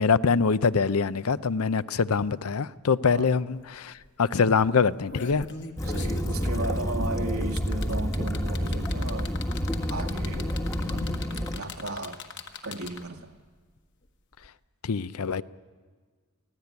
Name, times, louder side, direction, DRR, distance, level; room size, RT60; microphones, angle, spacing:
voice 1, 0.0-5.5 10.9-11.1 14.8-15.4, left 5 dB, 80° left, 0.6 m, -24 dB
sound 1, 3.6-3.7 4.0-4.2 4.8-13.2 14.4-14.5, left 4 dB, 55° left, 1.5 m, -41 dB
Waves surf / Splash splatter / Trickle dribble, 5.8-11.6, equal, 15° left, 1.2 m, -29 dB
voice 2, 5.8-9.3 9.9-12.2 12.6-13.3, right 2 dB, 80° right, 1.7 m, -35 dB
24.0 x 16.5 x 9.6 m
head